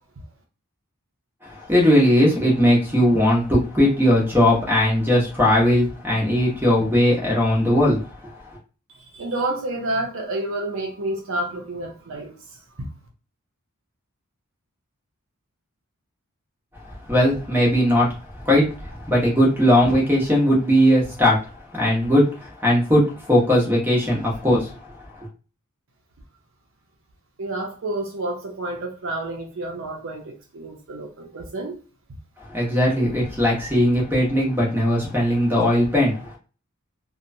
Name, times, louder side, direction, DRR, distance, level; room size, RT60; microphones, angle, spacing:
voice 1, 1.4-8.3 17.1-18.1 18.3-21.5 21.7-24.8 32.5-36.4, equal, 10° right, 0.9 m, -19 dB
voice 2, 8.9-12.9 27.4-31.8, right 2 dB, 60° right, 0.6 m, -29 dB
2.9 x 2.1 x 2.6 m
head